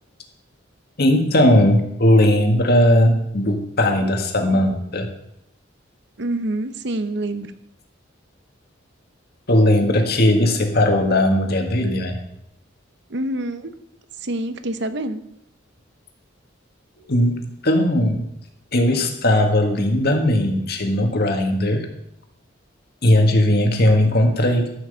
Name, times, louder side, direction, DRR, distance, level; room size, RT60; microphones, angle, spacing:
voice 1, 1.0-5.1 9.5-12.2 17.0-18.2 18.7-21.9 23.0-24.7, left 1 dB, 55° left, 4 dB, 1.8 m, -18 dB
voice 2, 6.2-7.5 13.1-13.7 14.2-15.2, right 1 dB, 65° right, 11 dB, 0.9 m, -26 dB
13.0 x 6.1 x 6.9 m, 0.79 s
head